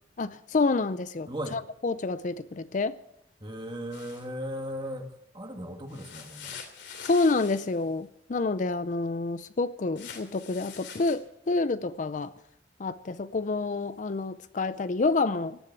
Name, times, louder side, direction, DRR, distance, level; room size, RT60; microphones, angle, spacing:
voice 1, 0.2-3.0 7.0-12.3 12.8-15.6, left 3 dB, 45° left, 14 dB, 0.5 m, -28 dB
voice 2, 1.3-1.6 3.4-6.6, equal, 25° right, 4 dB, 1.9 m, -37 dB
sound 1, 3.9-4.3 5.9-7.8 10.0-11.1, left 7 dB, 80° left, 3.0 m, -44 dB
17.0 x 10.0 x 7.2 m, 0.83 s
head